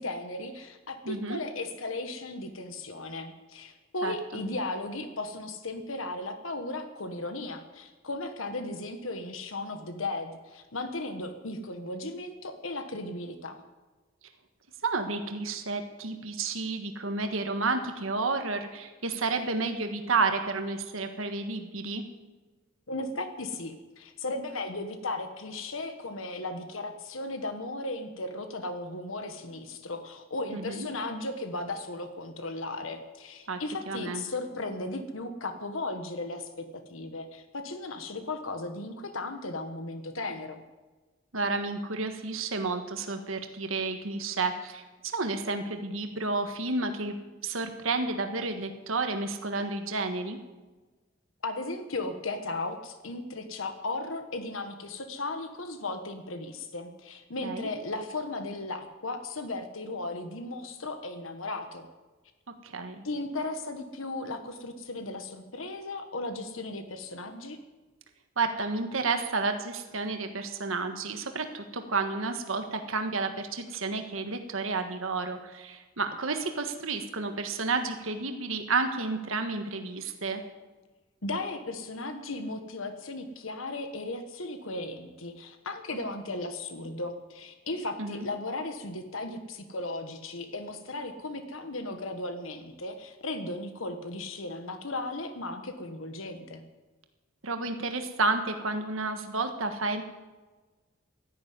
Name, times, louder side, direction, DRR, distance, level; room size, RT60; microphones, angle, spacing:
voice 1, 0.0-13.6 22.9-40.6 51.4-61.9 63.0-67.6 81.2-96.6, left 2 dB, 85° left, 7 dB, 1.4 m, -36 dB
voice 2, 1.0-1.4 4.0-4.1 14.8-22.0 30.5-30.9 33.5-33.6 33.9-34.2 41.3-47.1 47.4-50.4 57.4-57.7 62.6-63.0 68.4-80.4 88.0-88.3 97.4-100.0, right 3 dB, 85° right, 6 dB, 1.6 m, -31 dB
13.0 x 11.5 x 9.5 m, 1.2 s
head